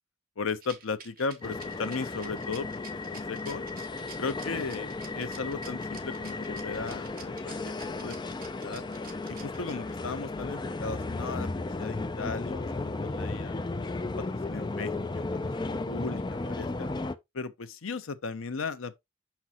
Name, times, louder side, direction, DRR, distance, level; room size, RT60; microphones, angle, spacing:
voice 1, 0.4-2.8 3.1-3.6 4.2-7.7 8.0-8.8 9.3-13.6 14.0-16.9 17.3-19.0, left 4 dB, 80° left, 0.7 m, -36 dB
Rattle, 0.6-10.1, right 6 dB, 45° right, 1.4 m, -49 dB
sound 1, 1.4-17.2, left 3 dB, 20° left, 0.4 m, -35 dB
5.9 x 5.9 x 2.9 m
head